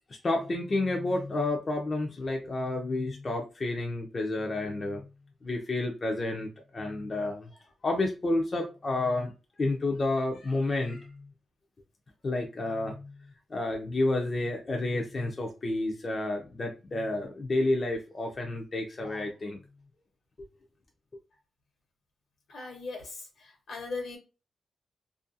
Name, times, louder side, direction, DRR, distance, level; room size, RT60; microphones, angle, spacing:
voice 1, 0.2-5.1 5.4-7.5 7.8-9.3 9.6-11.2 12.2-13.1 13.5-19.6, left 2 dB, 35° left, 0.4 m, -30 dB
voice 2, 22.5-24.2, left 3 dB, 75° left, 0.9 m, -39 dB
2.4 x 2.2 x 2.6 m
wide cardioid pair, 125°, 0 cm